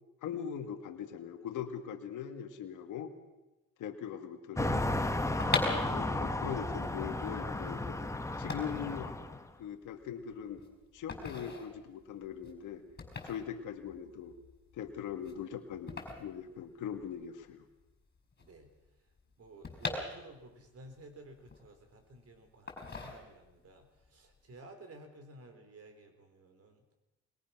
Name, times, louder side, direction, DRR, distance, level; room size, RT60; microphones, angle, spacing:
voice 1, 0.2-3.1 3.8-4.9 5.6-8.0 8.4-9.2 9.6-10.6 10.9-12.9 13.2-14.4 14.7-15.9 16.2-17.7, left 8 dB, 80° left, 6 dB, 1.9 m, -41 dB
sound 1, 4.6-9.4, left 2 dB, 10° left, 1.4 m, -34 dB
sound 2, 5.4-17.3 17.5-17.6 17.8-20.7 21.1-22.1 22.7-23.7 24.0-24.3, left 3 dB, 35° left, 5.4 m, -40 dB
voice 2, 18.4-18.7 19.4-26.8, right 2 dB, 55° right, 6 dB, 4.5 m, -54 dB
22.0 x 21.5 x 6.0 m, 1.0 s
cardioid pair, 90°, 30 cm